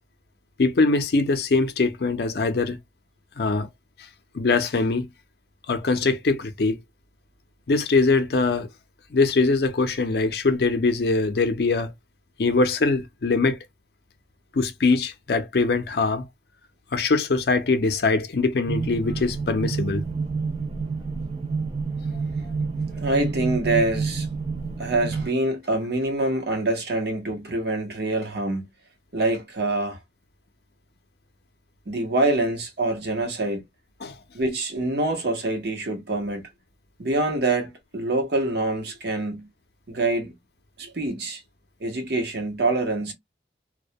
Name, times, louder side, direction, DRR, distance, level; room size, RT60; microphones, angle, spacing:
voice 1, 0.6-2.8 3.4-3.7 4.3-5.1 5.7-6.8 7.7-8.7 9.1-11.9 12.4-13.6 14.5-16.3 16.9-20.0 22.1-22.2 34.0-34.2, left 3 dB, 60° left, 0.5 m, -22 dB
sound 1, 18.7-25.3, right 4 dB, 30° right, 0.4 m, -29 dB
voice 2, 23.0-24.3 24.8-28.7 29.1-30.0 31.9-33.6 34.3-36.4 37.0-39.5 39.9-40.3 40.8-41.4 41.8-43.1, right 2 dB, 60° right, 0.8 m, -25 dB
2.2 x 2.1 x 2.7 m
head